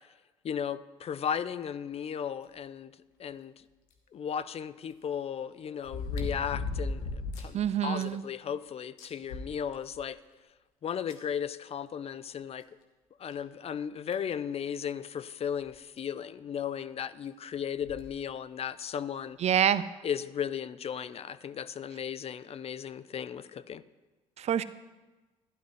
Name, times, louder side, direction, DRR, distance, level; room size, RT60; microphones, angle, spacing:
voice 1, 0.4-2.9 3.2-3.6 4.1-10.2 10.8-12.6 13.2-19.4 20.0-23.8, left 8 dB, 45° left, 15 dB, 0.5 m, -35 dB
sound 1, 3.9-4.0 5.8-7.6 8.0-8.1 8.5-8.6 9.0-10.1 11.1-11.2 12.6-12.7 13.3-13.4 14.1-14.3 15.7-15.8 16.0-16.1 17.8-18.1 18.8-18.9, left 3 dB, 85° left, 1.2 m, -36 dB
voice 2, 7.5-8.2 19.4-19.8 24.4-24.6, right 9 dB, 50° right, 15 dB, 0.4 m, -26 dB
12.5 x 11.0 x 3.2 m, 1.2 s
hypercardioid pair, 60°, 15 cm